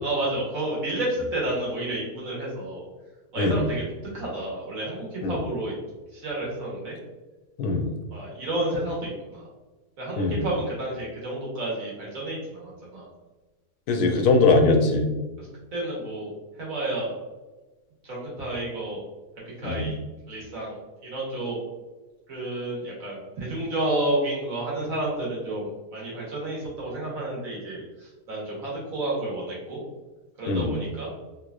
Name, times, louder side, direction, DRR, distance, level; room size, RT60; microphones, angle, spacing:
voice 1, 0.0-2.8 3.3-3.8 4.1-5.7 6.1-6.9 8.1-9.5 10.0-13.1 15.4-16.3 16.6-17.1 18.0-19.0 19.6-19.9 20.3-21.6 22.3-29.8 30.4-31.1, right 1 dB, 65° right, -5 dB, 1.6 m, -30 dB
voice 2, 13.9-15.1 19.6-19.9 30.4-30.7, left 3 dB, 85° left, 3 dB, 1.1 m, -21 dB
3.4 x 3.1 x 2.4 m, 1.2 s
omnidirectional pair, 1.6 m